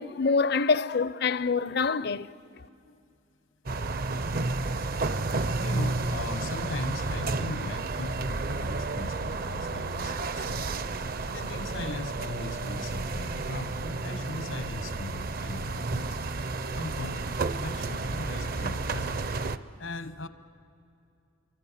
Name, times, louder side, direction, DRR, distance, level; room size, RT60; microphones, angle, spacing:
voice 1, 0.0-2.3, left 4 dB, 55° left, 0.5 m, -25 dB
sound 1, 3.7-19.6, right 3 dB, 45° right, 0.6 m, -31 dB
voice 2, 5.5-10.7 11.3-16.2 16.7-19.2 19.8-20.3, left 2 dB, 75° left, 1.0 m, -38 dB
28.0 x 25.0 x 7.2 m
head